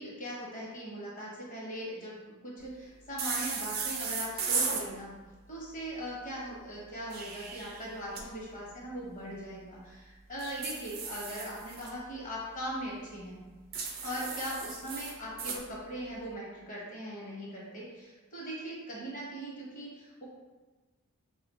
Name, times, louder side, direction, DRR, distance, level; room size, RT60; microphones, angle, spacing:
voice 1, 0.0-5.1 5.5-13.4 14.0-20.2, equal, 35° left, -5 dB, 1.0 m, -40 dB
sound 1, 3.2-4.9 6.9-8.2 10.4-11.9 13.7-15.6, right 5 dB, 45° right, 0.4 m, -35 dB
2.8 x 2.4 x 4.1 m, 1.3 s
head